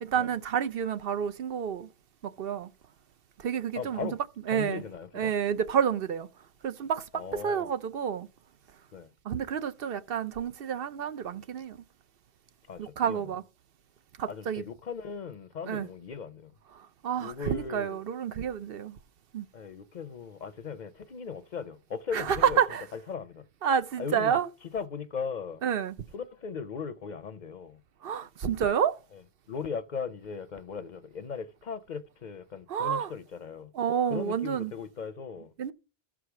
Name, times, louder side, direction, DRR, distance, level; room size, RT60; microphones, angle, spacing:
voice 1, 0.0-1.9 2.2-2.7 3.4-4.1 4.5-4.8 5.1-6.3 6.6-8.3 9.2-11.8 12.8-13.4 14.2-14.6 15.6-15.9 16.7-19.0 19.3-19.5 22.1-22.8 23.6-24.5 25.6-25.9 28.0-29.0 32.7-33.1 33.7-34.7 35.6-35.7, right 8 dB, 65° right, 0.9 m, -29 dB
voice 2, 3.8-4.2 4.5-5.3 7.1-7.7 8.9-9.1 12.7-13.3 14.3-16.5 17.2-18.0 19.5-22.6 22.9-23.4 24.0-24.4 24.7-25.6 26.1-27.8 29.5-33.7 34.1-35.5, left 6 dB, 50° left, 0.7 m, -38 dB
13.5 x 4.9 x 5.9 m
omnidirectional pair, 1.0 m